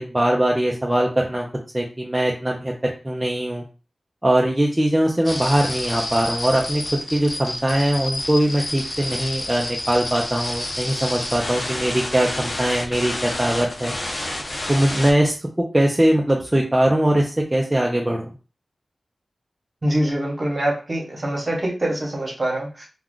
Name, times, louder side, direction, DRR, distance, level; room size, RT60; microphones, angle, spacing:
voice 1, 0.0-1.5 1.7-3.6 4.2-6.8 7.1-13.9 14.7-15.4 15.7-18.3, right 1 dB, 20° right, -1 dB, 0.6 m, -21 dB
sound 1, 5.2-15.1, left 1 dB, 55° left, 0.7 m, -29 dB
voice 2, 19.8-22.9, right 1 dB, 45° right, -1 dB, 1.2 m, -24 dB
2.3 x 2.3 x 3.7 m, 0.34 s
cardioid pair, 50°, 0 cm